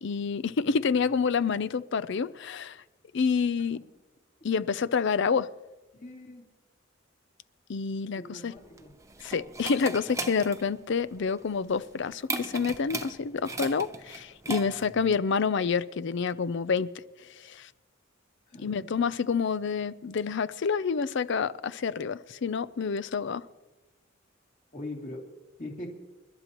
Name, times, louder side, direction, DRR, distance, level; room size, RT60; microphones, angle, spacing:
voice 1, 0.0-2.8 3.1-3.8 4.4-5.5 7.7-8.5 9.2-16.9 17.4-17.7 18.6-23.4, left 5 dB, 65° left, 0.5 m, -28 dB
voice 2, 5.9-6.4 8.2-8.9 14.6-14.9 18.5-18.8 24.7-25.2 25.6-25.9, left 1 dB, 40° left, 2.6 m, -41 dB
sound 1, 8.6-15.0, right 3 dB, 15° right, 0.7 m, -38 dB
29.5 x 12.0 x 3.0 m
head